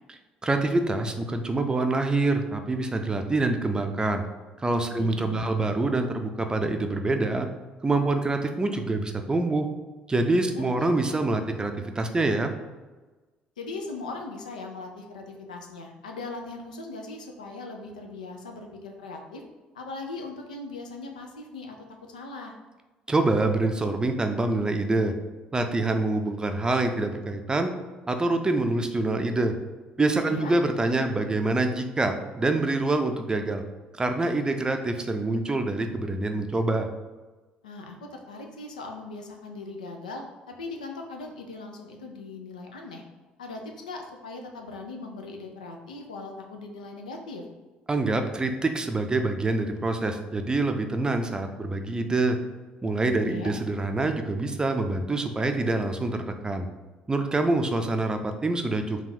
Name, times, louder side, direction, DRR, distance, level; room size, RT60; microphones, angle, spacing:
voice 1, 0.4-4.2 4.6-7.5 7.8-9.7 10.1-12.5 23.1-25.1 25.5-27.7 28.1-29.5 30.0-33.6 33.9-36.9 47.9-52.4 52.8-56.7 57.1-59.0, right 2 dB, 20° right, 6 dB, 0.5 m, -26 dB
voice 2, 4.9-5.5 10.4-10.6 13.6-19.4 19.7-21.8 22.1-22.6 30.3-30.5 37.6-43.0 43.4-47.4 53.1-53.5, left 3 dB, 80° left, 2 dB, 0.4 m, -39 dB
3.6 x 2.3 x 4.2 m, 1.2 s
figure-of-eight pair, 50°, 4 cm